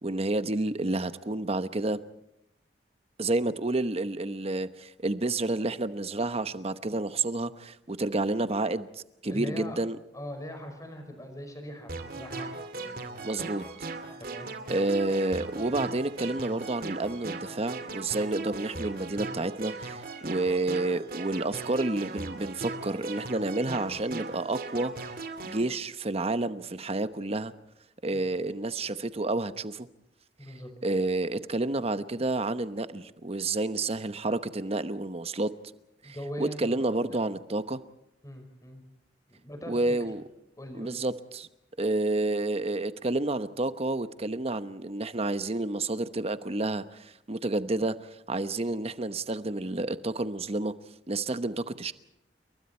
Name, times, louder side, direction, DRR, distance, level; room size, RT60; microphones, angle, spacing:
voice 1, 0.0-2.0 3.2-10.0 13.2-13.6 14.7-24.9 25.4-27.5 28.0-29.9 30.8-35.5 36.0-37.8 39.7-40.2 40.7-41.5 41.8-50.7 51.1-51.9, right 2 dB, 35° right, 1.0 m, -30 dB
voice 2, 9.3-9.8 10.1-13.5 14.2-14.5 28.1-28.3 30.4-30.7 36.0-37.2 38.2-38.8 39.3-39.8 40.6-41.0, equal, 20° left, 5.2 m, -41 dB
sound 1, 11.9-25.6, right 3 dB, 55° right, 2.4 m, -38 dB
29.0 x 23.0 x 4.4 m
head